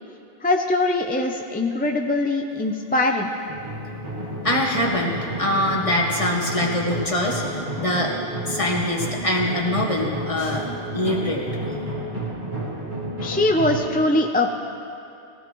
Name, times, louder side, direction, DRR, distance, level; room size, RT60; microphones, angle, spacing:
voice 1, 0.4-3.3 13.2-14.5, left 2 dB, 15° left, 2 dB, 0.4 m, -22 dB
sound 1, 3.5-13.8, right 1 dB, 80° right, 4.6 m, -31 dB
voice 2, 4.4-8.1 8.5-10.6 10.9-11.4, left 1 dB, 35° left, -2 dB, 1.7 m, -23 dB
19.0 x 16.0 x 3.1 m, 2.7 s
omnidirectional pair, 1.0 m